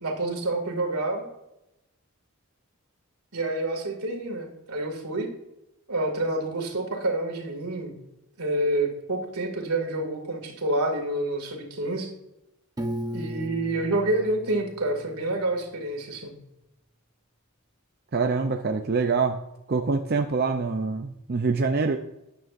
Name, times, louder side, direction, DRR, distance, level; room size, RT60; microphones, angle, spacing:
voice 1, 0.0-1.3 3.3-5.3 5.9-7.9 8.4-12.1 13.1-16.4, right 2 dB, 85° right, 3 dB, 2.3 m, -28 dB
Piano, 12.8-15.7, equal, 20° right, 0.8 m, -36 dB
voice 2, 18.1-19.4 19.7-22.0, right 4 dB, 45° right, 5 dB, 0.5 m, -25 dB
12.5 x 9.3 x 2.5 m, 0.89 s
head